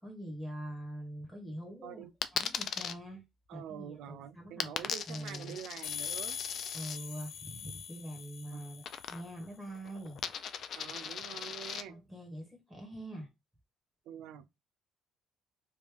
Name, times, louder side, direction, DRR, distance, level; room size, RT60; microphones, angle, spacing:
voice 1, 0.0-2.0 2.3-3.2 3.5-5.6 6.7-8.8 9.1-10.2 11.9-13.3, right 1 dB, 5° right, 1.4 m, -44 dB
Coin (dropping), 2.2-2.9 4.6-7.0 8.8-9.5 9.8-11.8, left 8 dB, 50° left, 0.4 m, -38 dB
voice 2, 3.5-6.4 8.5-8.6 10.8-11.9 14.1-14.5, right 9 dB, 80° right, 0.4 m, -46 dB
sound 1, 5.8-9.4, left 7 dB, 85° left, 0.8 m, -42 dB
3.3 x 2.5 x 3.4 m
cardioid pair, 150°, 0 cm